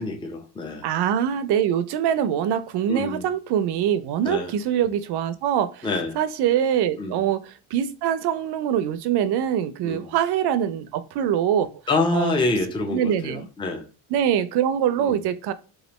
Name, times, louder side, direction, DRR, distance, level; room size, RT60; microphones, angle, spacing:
voice 1, 0.0-0.9 2.9-3.3 4.3-4.5 5.8-6.2 7.0-7.2 9.8-10.1 11.9-13.8 15.0-15.2, left 3 dB, 10° left, 0.5 m, -26 dB
voice 2, 0.8-5.9 6.1-11.7 12.1-12.3 12.9-13.5 14.1-15.5, right 9 dB, 65° right, 0.5 m, -23 dB
3.1 x 2.4 x 2.9 m
cardioid pair, 100°, 43 cm